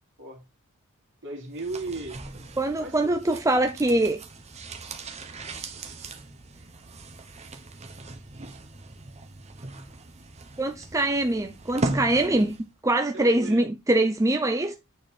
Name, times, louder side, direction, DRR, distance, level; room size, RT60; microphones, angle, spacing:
voice 1, 1.2-2.2 2.8-3.1 13.1-13.6, right 2 dB, 55° right, 3.1 m, -36 dB
sound 1, 1.5-12.7 13.0-13.1, right 2 dB, 30° right, 1.0 m, -38 dB
voice 2, 2.6-4.2 10.6-12.6 12.8-14.7, right 1 dB, 15° right, 0.6 m, -23 dB
8.9 x 4.7 x 4.2 m
head